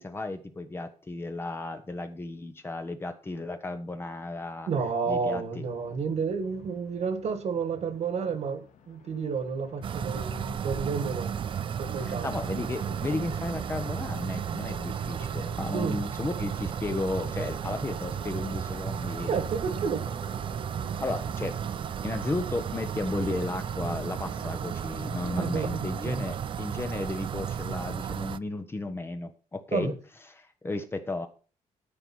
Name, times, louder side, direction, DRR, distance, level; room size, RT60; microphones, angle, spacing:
voice 1, 0.0-4.7 5.1-5.6 12.0-19.3 21.0-21.5 22.0-29.9 30.4-31.3, left 2 dB, 15° left, 1.1 m, -34 dB
voice 2, 4.7-11.4 11.8-12.3 15.7-16.0 19.2-20.0 25.4-26.3 29.7-30.0, right 5 dB, 55° right, 1.9 m, -31 dB
Aircraft, 5.5-25.4, left 7 dB, 70° left, 2.0 m, -51 dB
sound 1, 9.8-28.4, right 8 dB, 40° right, 0.4 m, -34 dB
13.5 x 5.0 x 6.1 m
wide cardioid pair, 170°, 13 cm